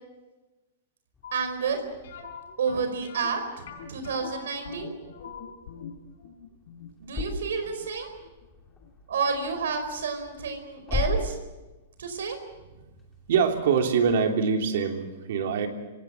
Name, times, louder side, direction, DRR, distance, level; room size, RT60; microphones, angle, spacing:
sound 1, 1.1-14.4, left 2 dB, 10° left, 2.8 m, -40 dB
sound 2, 1.2-1.9 2.2-2.9 3.2-3.9 4.2-4.9 5.2-5.9, left 8 dB, 90° left, 5.8 m, -44 dB
voice 1, 1.3-1.8 2.6-4.9 7.0-8.1 9.1-11.4 12.0-12.4, right 5 dB, 80° right, 7 dB, 4.8 m, -30 dB
sound 3, 2.0-8.9 9.2-9.3 9.8-10.0 10.3-10.4, left 6 dB, 65° left, 4.6 m, -44 dB
voice 2, 13.3-15.7, right 6 dB, 60° right, 4 dB, 3.3 m, -24 dB
27.0 x 18.0 x 7.6 m, 1.1 s
hypercardioid pair, 165°, 0 cm